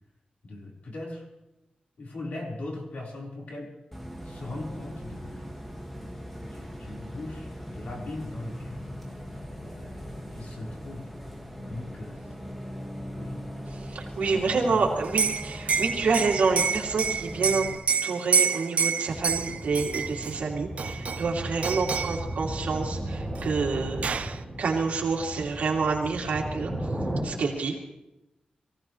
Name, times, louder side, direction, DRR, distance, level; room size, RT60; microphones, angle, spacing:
voice 1, 0.4-1.2 2.0-3.7 4.2-5.5 6.0-8.9 9.7-11.1 11.6-12.3 13.1-15.1, left 2 dB, 75° left, -2 dB, 4.4 m, -40 dB
Bus, 3.9-17.8, equal, 5° left, 1.9 m, -40 dB
voice 2, 13.7-17.7 18.0-26.7 27.2-27.7, right 4 dB, 85° right, -1 dB, 2.7 m, -28 dB
Liquid, 15.0-20.3 20.8-21.3 21.6-22.2 23.4-23.5 23.7-24.4, right 6 dB, 65° right, 0.6 m, -27 dB
sound 1, 19.1-27.2, right 1 dB, 10° right, 5.5 m, -35 dB
23.0 x 16.5 x 3.2 m, 0.94 s
wide cardioid pair, 105°, 2 cm